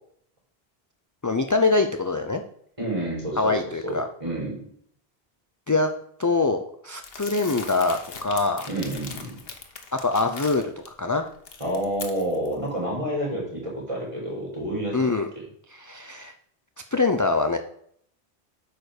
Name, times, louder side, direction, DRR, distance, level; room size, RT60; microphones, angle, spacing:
voice 1, 1.2-2.4 3.4-4.1 5.7-5.9 6.2-8.7 10.0-11.3 14.9-15.3 15.7-16.3 16.9-17.6, left 3 dB, 25° left, 6 dB, 0.4 m, -24 dB
voice 2, 2.8-4.6 8.7-9.4 11.6-15.4, right 1 dB, 30° right, -3 dB, 4.1 m, -29 dB
Crumpling crinkling, 7.0-10.9 11.3-12.5, left 5 dB, 70° left, 1.3 m, -40 dB
8.8 x 5.1 x 6.5 m, 0.66 s
omnidirectional pair, 1.1 m